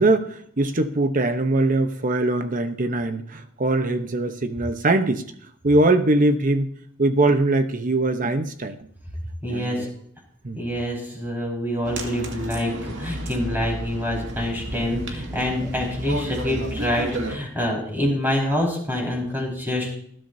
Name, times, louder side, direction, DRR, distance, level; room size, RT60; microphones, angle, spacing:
voice 1, 0.0-5.2 5.6-6.7 7.0-8.8 9.5-9.9 10.4-10.6, right 2 dB, 40° right, 0.9 m, -21 dB
voice 2, 9.4-9.9 10.5-19.9, left 1 dB, 10° right, 4.9 m, -26 dB
sound 1, 11.8-17.4, right 1 dB, 65° right, 2.2 m, -32 dB
19.5 x 12.5 x 2.8 m
head